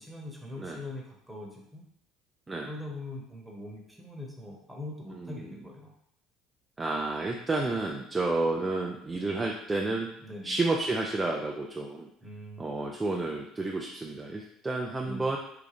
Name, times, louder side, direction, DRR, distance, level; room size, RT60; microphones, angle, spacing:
voice 1, 0.0-1.8 2.7-5.9 10.2-10.6 12.2-12.6 15.0-15.4, left 2 dB, 5° right, -1 dB, 1.1 m, -42 dB
voice 2, 5.1-5.5 6.8-10.1 10.4-12.1 12.6-15.4, right 2 dB, 20° right, 0 dB, 0.4 m, -30 dB
3.8 x 2.3 x 3.3 m, 0.74 s
hypercardioid pair, 70°, 0 cm